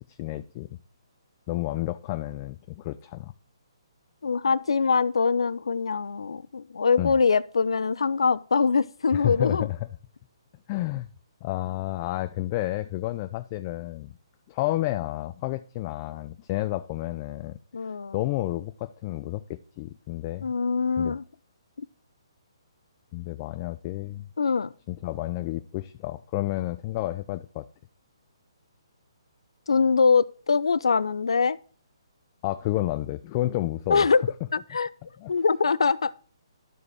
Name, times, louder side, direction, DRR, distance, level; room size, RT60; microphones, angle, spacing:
voice 1, 0.1-0.8 1.5-3.3 7.0-7.1 9.1-9.8 10.7-11.1 11.4-14.1 14.5-20.5 21.0-21.2 23.1-24.3 24.9-27.7 32.4-34.1 35.2-35.3, left 16 dB, 30° left, 0.5 m, -30 dB
voice 2, 4.2-9.7 17.7-18.2 20.4-21.2 21.8-21.9 24.4-24.7 29.7-31.6 33.9-34.2 34.5-34.9 35.3-36.1, left 5 dB, 80° left, 0.6 m, -23 dB
12.5 x 5.0 x 4.8 m
hypercardioid pair, 145°, 3 cm